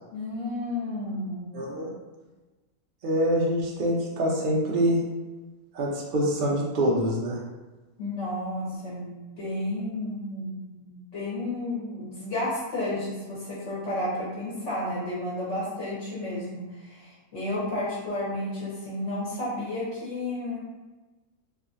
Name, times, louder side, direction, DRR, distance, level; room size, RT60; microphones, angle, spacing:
voice 1, 0.1-1.5 8.0-20.6, left 1 dB, 60° left, -9 dB, 1.1 m, -32 dB
voice 2, 1.5-1.9 3.0-5.0 5.7-7.4, equal, 80° right, -2 dB, 0.4 m, -25 dB
2.6 x 2.5 x 2.4 m, 1.2 s
omnidirectional pair, 1.5 m